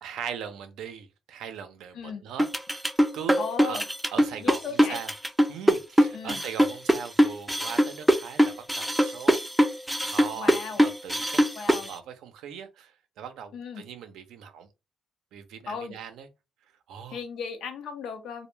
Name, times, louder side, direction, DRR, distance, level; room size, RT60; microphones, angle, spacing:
voice 1, 0.0-3.8 4.1-5.1 5.5-9.4 10.0-14.7 15.3-16.3 16.9-17.2, right 8 dB, 85° right, 0.4 m, -40 dB
sound 1, 2.4-11.9, equal, 5° right, 0.4 m, -22 dB
voice 2, 3.4-3.8 4.4-5.0 6.1-6.4 10.4-10.8 11.6-11.9 13.5-13.8 15.7-16.0 17.1-18.5, left 6 dB, 75° left, 0.5 m, -36 dB
2.1 x 2.0 x 3.1 m
cardioid pair, 90°, 0 cm